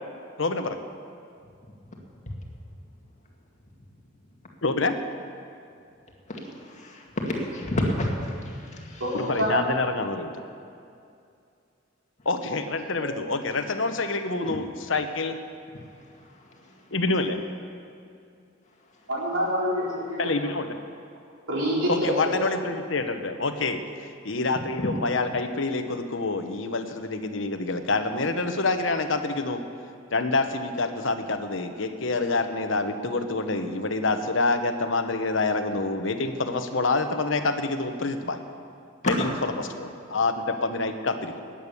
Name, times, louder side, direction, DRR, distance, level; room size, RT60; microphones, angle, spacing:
voice 1, 0.4-0.8 4.6-5.0 9.1-10.3 12.2-15.4 16.9-17.4 20.2-20.7 21.9-23.8 24.2-29.6 30.1-38.4 39.0-41.5, left 3 dB, 70° left, 7 dB, 1.1 m, -27 dB
voice 2, 6.3-9.0 24.8-24.9 39.0-39.1, left 1 dB, 35° left, -1 dB, 2.2 m, -29 dB
voice 3, 9.0-9.5 12.9-13.0 19.1-20.3 21.5-22.3, equal, 75° right, -5 dB, 4.2 m, -26 dB
19.0 x 8.8 x 7.1 m, 2.4 s
head